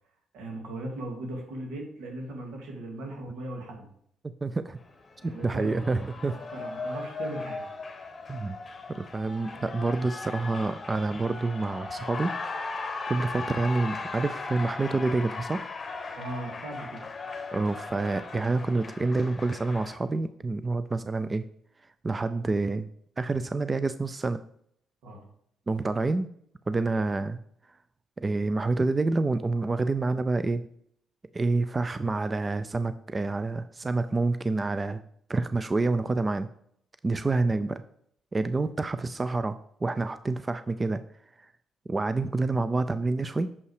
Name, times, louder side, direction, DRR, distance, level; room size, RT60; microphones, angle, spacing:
voice 1, 0.3-3.9 5.2-5.8 6.3-7.7 8.0-8.2 9.4-9.6 16.1-17.1 25.0-25.2, right 1 dB, 85° right, 1 dB, 2.3 m, -38 dB
voice 2, 4.4-4.8 5.2-6.4 8.3-8.6 8.9-12.3 13.1-15.6 17.5-21.4 22.0-22.9 23.2-24.4 25.7-26.3 26.7-27.4 28.2-30.6 31.3-35.0 35.3-36.5 37.0-37.8 38.3-41.0 41.4-41.5 41.9-43.5, right 3 dB, 25° right, 12 dB, 0.4 m, -28 dB
Cheering, 4.8-20.0, left 3 dB, 35° left, 1.0 m, -38 dB
6.8 x 5.5 x 4.8 m, 0.68 s
cardioid pair, 90°, 0 cm